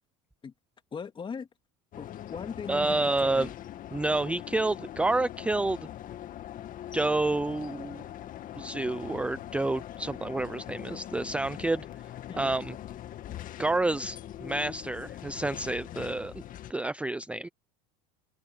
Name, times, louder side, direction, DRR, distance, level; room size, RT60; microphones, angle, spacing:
voice 1, 0.9-1.5 2.0-3.5 12.3-12.6, left 6 dB, 25° left, 2.3 m, -39 dB
sound 1, 1.9-16.7, left 12 dB, 45° left, 2.1 m, -42 dB
voice 2, 2.7-3.5 3.9-5.8 6.9-8.0 8.6-11.9 12.3-12.7 13.6-16.4 16.7-17.5, right 2 dB, 5° right, 0.6 m, -29 dB
open air
supercardioid pair, 105°, 20 cm